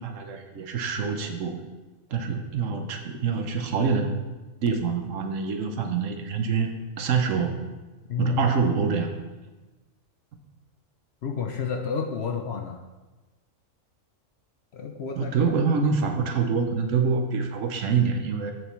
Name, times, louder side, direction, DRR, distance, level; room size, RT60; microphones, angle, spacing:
voice 1, 0.0-1.6 2.1-4.1 4.6-6.7 7.0-7.6 8.2-9.1 15.2-18.5, right 5 dB, 70° right, 5 dB, 1.2 m, -25 dB
voice 2, 8.1-8.4 11.2-12.8 14.7-15.3, left 6 dB, 60° left, 3 dB, 0.8 m, -30 dB
8.2 x 6.8 x 3.1 m, 1.2 s
omnidirectional pair, 1.4 m